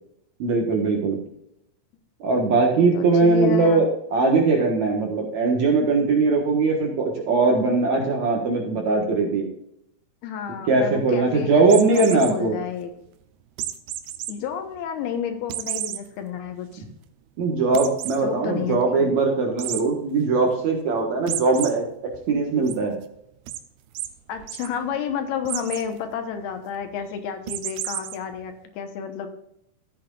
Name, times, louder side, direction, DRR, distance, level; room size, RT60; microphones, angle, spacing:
voice 1, 0.4-1.2 2.2-9.5 10.7-12.5 17.4-21.8 22.3-22.9, right 3 dB, 60° right, 1 dB, 2.3 m, -20 dB
voice 2, 2.7-3.9 10.2-12.9 14.3-16.8 18.2-19.1 24.3-29.3, left 7 dB, 80° left, 6 dB, 3.0 m, -31 dB
sound 1, 11.6-12.3 13.6-14.3 14.8-14.9 15.5-16.0 16.5-16.6 16.9-17.0 17.7-18.2 19.6-19.8 21.3-21.7 22.1-22.7 23.5-23.6 24.0-24.1 24.4-24.7 25.5-25.9 27.5-28.2, right 13 dB, 80° right, 2.6 m, -31 dB
14.0 x 8.7 x 2.5 m, 0.76 s
omnidirectional pair, 4.6 m